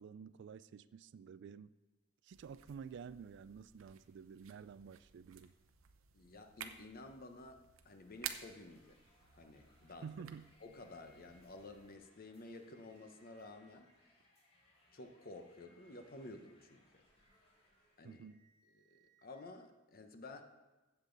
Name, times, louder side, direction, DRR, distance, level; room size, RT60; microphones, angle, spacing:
voice 1, 0.0-1.7 2.2-5.5 10.0-10.5 18.0-18.4, right 6 dB, 60° right, 16 dB, 0.3 m, -51 dB
sound 1, 2.3-12.0, right 9 dB, 80° right, 0.7 m, -53 dB
voice 2, 6.1-9.0 9.4-10.1 10.6-14.2 14.9-17.0 18.0-18.3 18.8-20.4, left 2 dB, 45° left, 6 dB, 1.0 m, -53 dB
sound 2, 7.7-18.2, left 1 dB, 30° left, 2.6 m, -72 dB
sound 3, 10.5-11.5 12.3-13.9 15.2-16.5 17.9-19.5, equal, 75° left, 3.3 m, -73 dB
15.5 x 7.0 x 4.0 m, 1.1 s
head